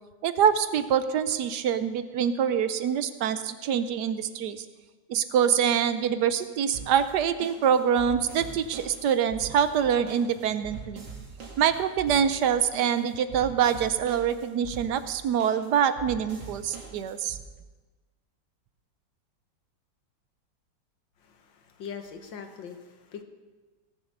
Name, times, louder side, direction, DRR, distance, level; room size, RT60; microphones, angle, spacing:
voice 1, 0.2-4.6 5.1-11.1 11.6-17.4, right 8 dB, 70° right, 12 dB, 1.1 m, -25 dB
sound 1, 6.7-17.4, right 5 dB, 85° right, 2.9 m, -43 dB
voice 2, 21.2-23.2, left 7 dB, 75° left, 6 dB, 1.9 m, -42 dB
18.0 x 7.5 x 6.5 m, 1.3 s
omnidirectional pair, 2.0 m